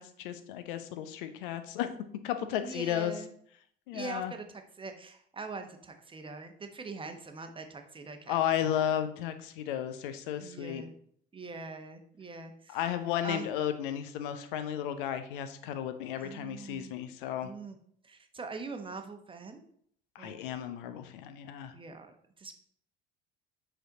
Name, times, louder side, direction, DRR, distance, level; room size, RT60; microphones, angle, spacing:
voice 1, 0.0-2.0 2.2-3.1 3.9-4.3 8.3-10.9 12.7-17.5 20.1-21.7, left 10 dB, 60° left, 9 dB, 0.8 m, -33 dB
voice 2, 2.6-3.3 3.9-8.4 10.4-10.9 11.3-12.8 13.2-13.5 16.2-16.9 17.4-17.8 18.0-19.6 20.2-20.4 21.7-22.5, right 4 dB, 15° right, 6 dB, 1.0 m, -43 dB
7.9 x 4.8 x 3.9 m, 0.64 s
figure-of-eight pair, 65°, 29 cm